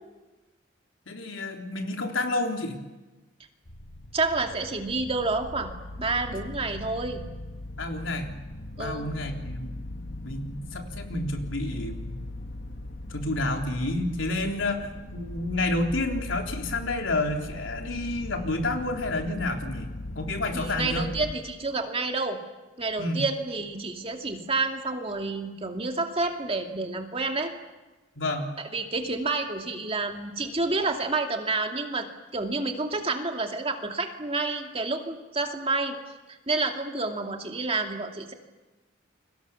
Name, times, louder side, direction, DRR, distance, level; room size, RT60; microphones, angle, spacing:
voice 1, 1.1-2.8 7.8-8.4 8.8-9.7 10.2-12.2 13.1-19.9 20.2-21.1 23.0-23.2 28.2-28.5, left 2 dB, 85° left, 3 dB, 3.7 m, -30 dB
sound 1, 3.6-21.3, left 1 dB, 60° left, 1.9 m, -39 dB
voice 2, 4.1-7.2 8.8-9.1 20.5-22.4 22.8-27.5 28.7-32.1 32.3-36.0 36.5-38.3, right 3 dB, 30° right, 4 dB, 2.5 m, -29 dB
29.5 x 23.0 x 7.2 m, 1.1 s
head